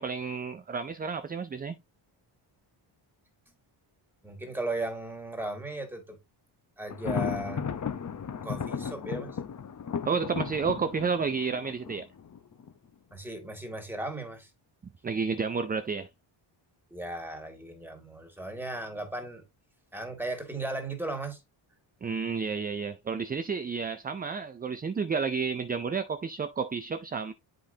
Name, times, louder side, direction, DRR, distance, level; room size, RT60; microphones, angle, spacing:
voice 1, 0.0-1.8 10.0-12.1 15.0-16.1 22.0-27.3, right 5 dB, 20° right, 0.3 m, -31 dB
voice 2, 4.2-6.2 6.8-7.7 8.4-9.4 13.1-14.5 16.9-19.4 19.9-21.4, right 2 dB, 5° right, 2.1 m, -36 dB
Thunder, 6.9-12.7, left 7 dB, 35° left, 0.9 m, -35 dB
7.7 x 5.2 x 2.7 m
cardioid pair, 100°, 49 cm